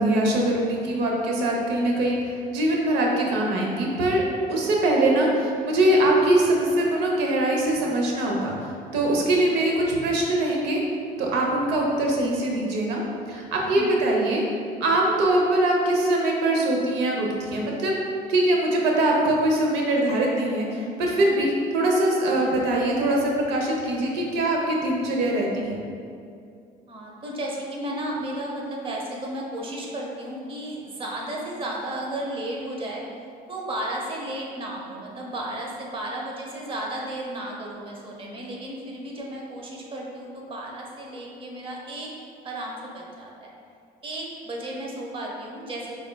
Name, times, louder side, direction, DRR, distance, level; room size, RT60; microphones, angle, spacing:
voice 1, 0.0-4.2 4.5-8.6 8.9-10.8 11.2-13.0 13.3-14.4 14.8-17.9 18.3-25.8, right 1 dB, 90° right, -1 dB, 0.7 m, -22 dB
voice 2, 5.2-5.5 12.5-12.8 13.7-14.0 22.3-22.9 26.9-33.0 33.5-42.1 42.4-43.5 44.0-46.0, right 1 dB, 30° right, -2 dB, 0.8 m, -34 dB
5.0 x 3.5 x 2.2 m, 2.4 s
cardioid pair, 110°, 17 cm